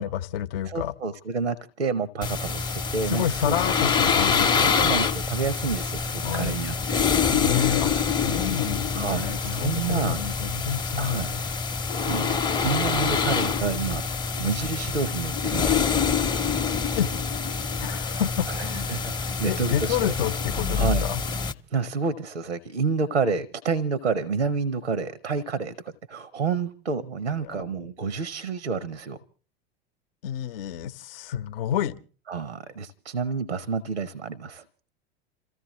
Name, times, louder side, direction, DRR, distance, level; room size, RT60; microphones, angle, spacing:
voice 1, 0.0-0.9 3.1-4.7 6.2-6.6 7.3-11.4 17.0-17.1 17.8-18.9 19.4-21.2 27.4-27.6 30.2-31.9, left 9 dB, 55° left, 0.7 m, -29 dB
voice 2, 0.6-3.6 4.5-7.0 7.5-7.8 8.9-10.2 11.0-11.3 11.9-14.0 14.4-15.9 18.5-20.1 20.7-21.1 21.7-29.2 32.3-34.6, right 5 dB, 85° right, 0.8 m, -29 dB
sound 1, 2.2-21.5, left 6 dB, 15° left, 0.7 m, -26 dB
28.0 x 15.0 x 3.0 m
figure-of-eight pair, 80°, 33 cm